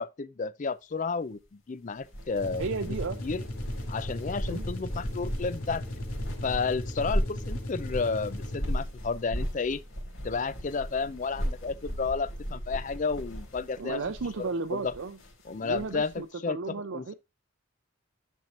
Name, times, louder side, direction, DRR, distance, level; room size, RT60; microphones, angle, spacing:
voice 1, 0.0-3.0 3.2-3.4 3.9-5.8 6.4-9.8 10.2-14.0 14.4-14.9 15.5-16.6 16.9-17.1, left 4 dB, 35° left, 0.4 m, -32 dB
sound 1, 2.0-16.2, equal, 60° left, 3.6 m, -36 dB
sound 2, 2.3-8.9, left 1 dB, 80° left, 2.2 m, -38 dB
voice 2, 2.6-3.2 4.5-4.6 13.8-15.2 15.5-17.1, right 4 dB, 65° right, 0.5 m, -34 dB
10.5 x 4.5 x 2.5 m
head